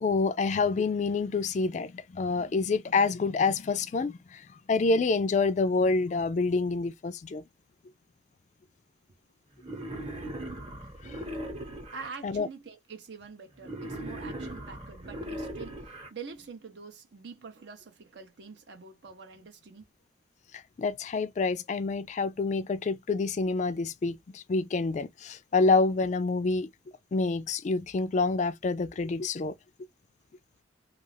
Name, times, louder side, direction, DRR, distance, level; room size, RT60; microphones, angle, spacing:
voice 1, 0.0-4.4 4.7-7.4 12.2-12.5 20.8-26.7 27.1-29.5, left 3 dB, 40° left, 0.3 m, -27 dB
Wild animals, 9.6-12.1 13.6-16.1, right 1 dB, 30° right, 0.9 m, -39 dB
voice 2, 11.9-19.9, right 5 dB, 65° right, 0.6 m, -45 dB
2.4 x 2.4 x 3.1 m
head